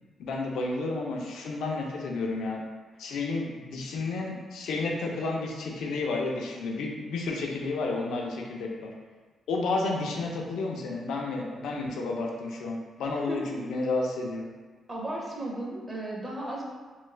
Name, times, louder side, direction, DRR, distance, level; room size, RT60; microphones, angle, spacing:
voice 1, 0.2-2.6 3.0-8.9 9.5-14.5, left 3 dB, 80° left, 0 dB, 0.4 m, -31 dB
voice 2, 14.9-16.6, right 1 dB, 20° right, -3 dB, 0.5 m, -35 dB
2.7 x 2.3 x 3.2 m, 1.4 s
cardioid pair, 140°, 0 cm